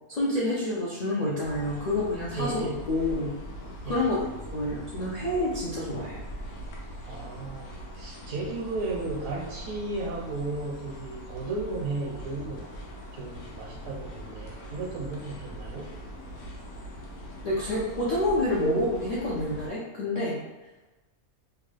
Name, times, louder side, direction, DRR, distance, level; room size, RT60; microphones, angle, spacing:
voice 1, 0.1-3.3 3.8-6.2 17.4-20.4, left 1 dB, 70° left, -7 dB, 0.4 m, -28 dB
sound 1, 1.4-19.7, equal, 90° left, 1.1 m, -41 dB
voice 2, 2.4-2.8 3.8-4.1 7.0-12.7 13.1-15.9, right 3 dB, 75° right, -2 dB, 1.0 m, -34 dB
2.9 x 2.2 x 3.2 m, 1.1 s
omnidirectional pair, 1.5 m